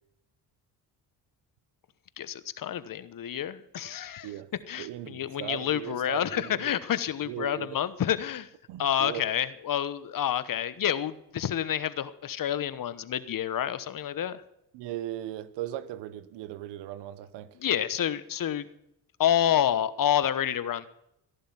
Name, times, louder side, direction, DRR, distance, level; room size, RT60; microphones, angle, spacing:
voice 1, 2.2-4.3 4.7-8.5 8.8-14.4 17.6-18.7 19.2-20.9, left 10 dB, 55° left, 1.2 m, -28 dB
voice 2, 4.8-6.8 7.3-7.8 8.7-9.3 14.7-17.6, right 12 dB, 90° right, 1.0 m, -38 dB
14.0 x 11.5 x 5.8 m
cardioid pair, 75°, 40 cm